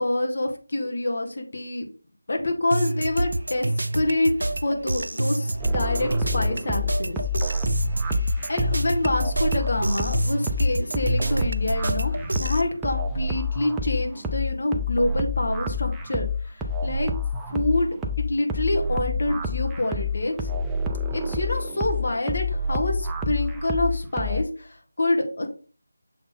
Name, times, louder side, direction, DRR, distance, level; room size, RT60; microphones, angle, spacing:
voice 1, 0.0-1.9 2.3-4.3 4.6-7.2 8.3-17.1 17.5-18.0 18.3-20.5 21.1-25.5, left 2 dB, 50° left, 2 dB, 1.4 m, -26 dB
sound 1, 2.7-12.6, right 1 dB, 80° right, 0.5 m, -28 dB
sound 2, 5.6-24.4, left 2 dB, 5° right, 0.4 m, -28 dB
7.0 x 3.6 x 3.8 m, 0.39 s
figure-of-eight pair, 175°, 0 cm